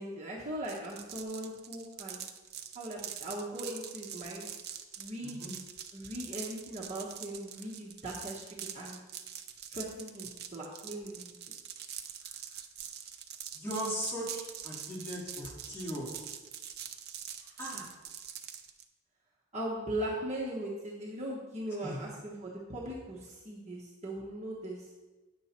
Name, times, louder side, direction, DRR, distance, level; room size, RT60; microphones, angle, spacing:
voice 1, 0.0-2.3 2.7-4.5 5.0-5.4 5.9-8.4 8.7-9.0 9.7-11.3 17.4-17.6 19.5-24.9, right 1 dB, 30° right, -4 dB, 1.1 m, -39 dB
sound 1, 0.6-18.8, right 9 dB, 50° right, 0.6 m, -44 dB
voice 2, 5.2-5.5 12.2-12.3 13.5-16.3 17.6-17.9 21.8-22.0, equal, 10° left, -7 dB, 2.9 m, -38 dB
9.4 x 6.6 x 4.3 m, 1.2 s
head